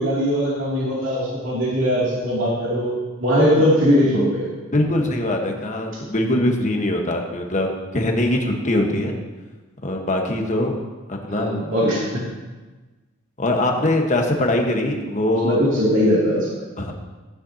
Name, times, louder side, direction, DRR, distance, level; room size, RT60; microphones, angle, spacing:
voice 1, 0.0-2.9 3.2-4.5 11.3-12.2 15.4-16.6, equal, 65° right, -6 dB, 2.7 m, -20 dB
voice 2, 4.7-9.2 9.8-10.8 11.1-11.6 13.4-15.6 16.8-16.9, left 1 dB, 35° left, 2 dB, 1.3 m, -22 dB
14.5 x 9.6 x 2.9 m, 1.2 s
head